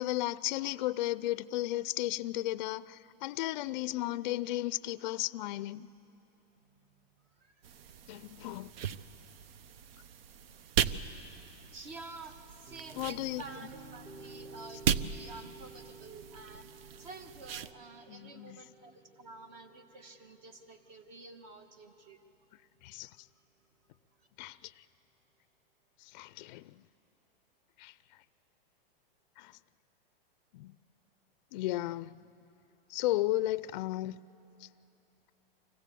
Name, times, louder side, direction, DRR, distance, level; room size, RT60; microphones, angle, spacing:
voice 1, 0.0-5.9 8.1-8.7 10.9-11.1 13.0-13.4 18.1-18.6 22.8-23.1 24.4-24.7 26.0-26.8 27.8-27.9 29.4-29.6 30.5-30.8 31.5-32.1 32.9-34.2 34.6-34.7, left 16 dB, 50° left, 0.4 m, -34 dB
voice 2, 7.3-9.0 11.0-22.2 23.0-23.2, right 3 dB, 45° right, 1.5 m, -51 dB
sound 1, 7.6-17.7, right 8 dB, 80° right, 0.7 m, -38 dB
sound 2, 12.3-21.4, right 3 dB, 15° right, 0.6 m, -53 dB
25.0 x 16.0 x 8.3 m
supercardioid pair, 155°, 29 cm